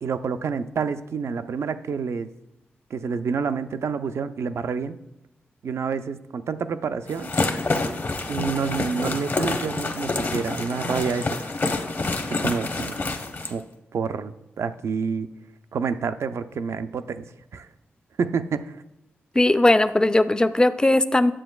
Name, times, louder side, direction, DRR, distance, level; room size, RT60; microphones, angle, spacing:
voice 1, 0.0-2.3 2.9-5.0 5.6-7.3 8.3-11.4 12.3-13.0 13.5-13.7 13.9-15.3 15.7-17.7 18.2-18.8, right 5 dB, 75° right, 11 dB, 0.4 m, -28 dB
sound 1, 7.1-13.5, left 3 dB, 45° left, 0.8 m, -27 dB
voice 2, 19.4-21.3, left 1 dB, 15° left, 12 dB, 0.4 m, -18 dB
9.9 x 7.2 x 2.3 m, 0.90 s
cardioid pair, 55°, 5 cm